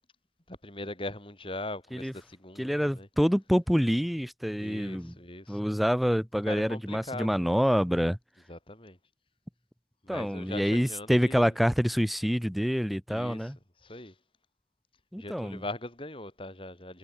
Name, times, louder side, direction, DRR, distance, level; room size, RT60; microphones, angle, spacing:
voice 1, 0.5-3.1 4.6-5.6 6.5-7.4 8.5-9.0 10.0-11.5 13.1-13.5 13.8-14.1 15.2-17.0, left 2 dB, 30° left, 5.1 m, -40 dB
voice 2, 2.6-5.2 5.5-8.2 10.1-13.6 15.1-15.6, equal, ahead, 3.6 m, -27 dB
head